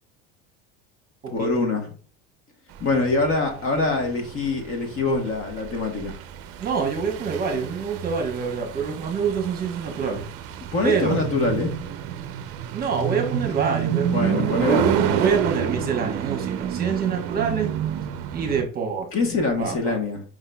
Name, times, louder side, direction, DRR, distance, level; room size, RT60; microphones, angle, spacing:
voice 1, 1.3-1.9 2.8-6.2 10.7-11.8 14.1-15.3 19.1-20.2, left 3 dB, 40° left, 1.2 m, -24 dB
sound 1, 2.8-18.6, right 9 dB, 50° right, 0.5 m, -28 dB
voice 2, 6.6-10.3 10.8-11.2 12.7-14.8 15.2-17.7 18.3-19.1 19.6-20.0, right 6 dB, 30° right, 1.0 m, -26 dB
4.9 x 3.6 x 2.2 m
supercardioid pair, 125°, 32 cm